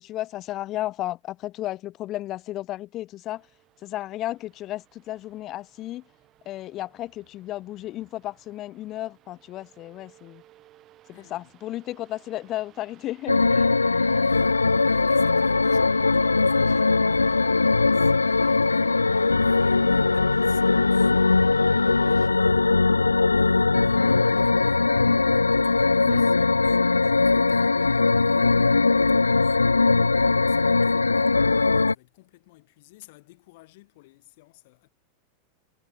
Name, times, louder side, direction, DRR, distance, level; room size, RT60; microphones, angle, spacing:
voice 1, 0.0-3.5 3.8-6.1 6.4-10.4 11.2-13.7 26.1-26.2, left 15 dB, 35° left, 2.9 m, -33 dB
sound 1, 3.3-22.3, right 13 dB, 35° right, 5.2 m, -54 dB
voice 2, 11.1-11.5 14.0-34.9, left 21 dB, 50° left, 7.4 m, -53 dB
sound 2, 13.3-31.9, left 3 dB, 80° left, 0.5 m, -20 dB
figure-of-eight pair, 90°, 0 cm